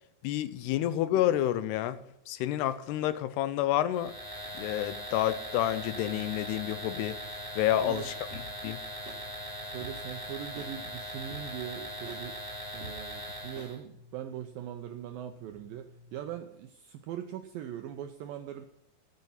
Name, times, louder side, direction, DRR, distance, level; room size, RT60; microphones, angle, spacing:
voice 1, 0.2-4.2 4.5-8.8, left 13 dB, 85° left, 2.8 m, -30 dB
sound 1, 3.9-13.8, equal, 15° left, 1.4 m, -40 dB
sound 2, 6.0-16.3, left 3 dB, 50° left, 4.1 m, -56 dB
voice 2, 7.7-8.1 9.6-12.4 12.7-18.7, right 10 dB, 80° right, 2.1 m, -41 dB
sound 3, 8.3-8.4 9.1-9.2 9.8-9.9 10.6-10.7 11.3-11.4 12.1-12.2 12.8-12.9 13.6-13.7, right 2 dB, 45° right, 4.9 m, -45 dB
13.5 x 9.6 x 5.7 m
omnidirectional pair, 4.7 m